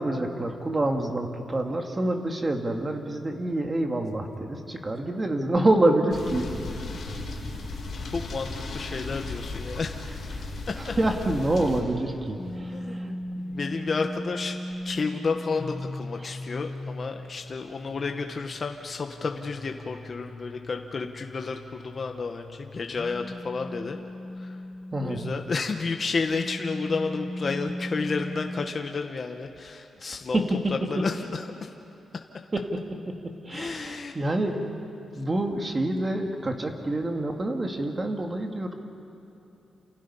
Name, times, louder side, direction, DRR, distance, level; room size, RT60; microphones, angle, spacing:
voice 1, 0.0-6.6 10.4-10.5 10.8-13.1 16.2-16.3 24.9-25.3 30.3-30.4 32.5-32.8 33.1-33.2 33.4-34.7 35.1-38.8, right 1 dB, 20° right, 3 dB, 2.0 m, -27 dB
sound 1, 6.1-11.8, left 3 dB, 55° left, 5.8 m, -35 dB
voice 2, 8.1-10.2 10.7-10.9 12.7-13.2 13.5-14.6 14.8-24.0 24.4-24.6 25.0-30.4 30.7-31.7 33.5-34.2, left 4 dB, 35° left, 4 dB, 1.1 m, -31 dB
sound 2, 12.4-25.4 26.0-28.7, left 1 dB, 15° left, 1.2 m, -38 dB
29.0 x 28.5 x 5.6 m, 2.9 s
wide cardioid pair, 160°, 0 cm